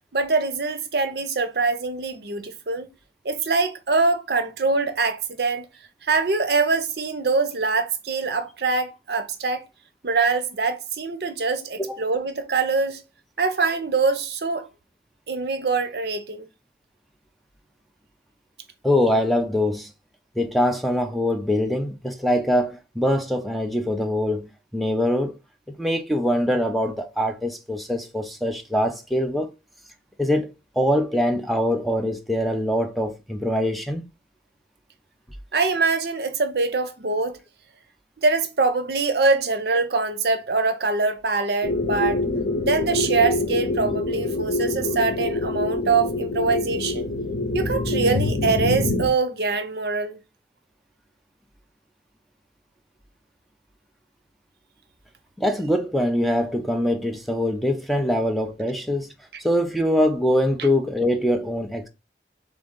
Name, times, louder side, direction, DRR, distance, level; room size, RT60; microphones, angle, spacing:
voice 1, 0.1-2.9 3.2-5.7 6.0-9.6 10.0-13.0 13.4-14.7 15.3-16.5 35.5-37.4 38.2-42.2 42.7-47.1 47.5-50.2 59.3-59.4, right 4 dB, 65° right, 0.7 m, -24 dB
voice 2, 18.8-19.9 20.4-25.4 25.8-29.5 30.2-34.0 55.4-59.1 59.4-61.9, left 1 dB, ahead, 0.4 m, -23 dB
sound 1, 41.6-49.1, left 2 dB, 80° left, 1.0 m, -25 dB
3.7 x 3.5 x 3.7 m
head